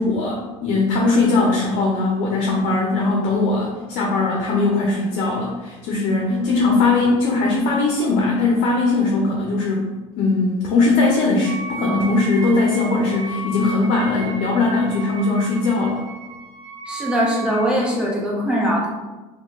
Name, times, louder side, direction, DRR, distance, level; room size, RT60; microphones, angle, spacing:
voice 1, 0.0-9.9 10.2-16.0, left 3 dB, 65° left, -1 dB, 0.6 m, -20 dB
Wind instrument woodwind instrument, 11.4-17.8, right 3 dB, 80° right, 0.6 m, -34 dB
voice 2, 16.9-18.9, equal, 5° right, -4 dB, 0.9 m, -21 dB
2.9 x 2.3 x 3.7 m, 1.2 s
supercardioid pair, 95°, 16 cm